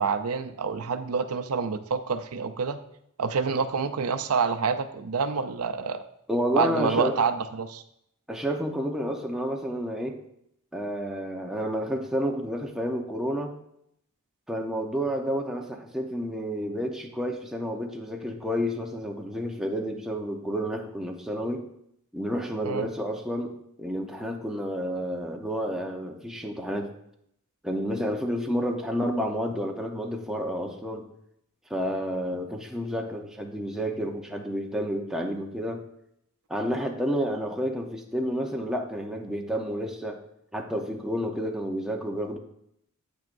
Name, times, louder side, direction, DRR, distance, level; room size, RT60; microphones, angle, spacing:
voice 1, 0.0-2.8 3.2-6.0 6.5-7.8 22.6-22.9, right 5 dB, 85° right, 10 dB, 0.5 m, -27 dB
voice 2, 6.3-7.2 8.3-10.2 10.7-13.6 14.5-21.6 22.1-23.5 23.8-26.9 27.6-31.1 31.7-35.8 36.5-40.2 40.5-42.4, equal, ahead, 1 dB, 0.8 m, -30 dB
9.2 x 8.4 x 2.6 m, 0.74 s
head